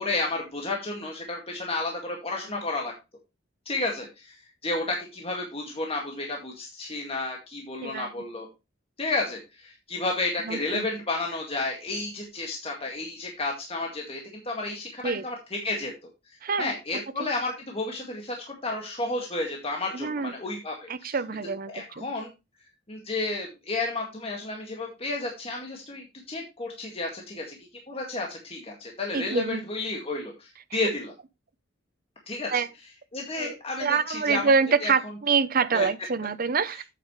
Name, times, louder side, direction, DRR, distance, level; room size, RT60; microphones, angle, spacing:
voice 1, 0.0-2.9 3.7-4.4 4.6-8.5 9.0-15.9 16.6-21.2 21.7-22.3 22.9-27.6 27.9-31.1 32.3-32.6 33.1-34.5 34.8-34.9 35.7-35.9, left 2 dB, 30° left, 1.9 m, -32 dB
voice 2, 10.4-10.9 15.0-15.2 16.4-16.7 19.9-20.3 20.9-22.1 29.1-29.6 30.7-30.8 32.5-32.7 33.3-33.5 33.8-36.8, right 5 dB, 50° right, 0.8 m, -26 dB
8.7 x 8.6 x 3.2 m
head